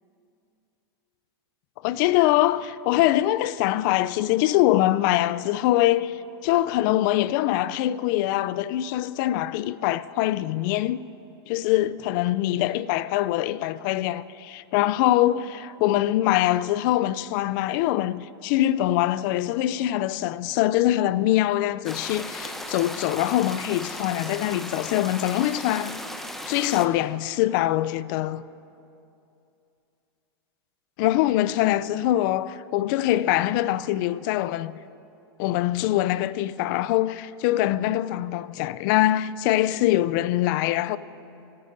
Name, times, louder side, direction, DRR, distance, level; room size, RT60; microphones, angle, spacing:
voice 1, 1.8-11.1 11.5-26.0 26.5-28.4 31.0-34.7 35.4-41.0, left 14 dB, 50° left, 0.4 m, -23 dB
sound 1, 21.8-26.9, left 1 dB, ahead, 0.7 m, -36 dB
26.0 x 9.3 x 2.6 m
hypercardioid pair, 120°, 14 cm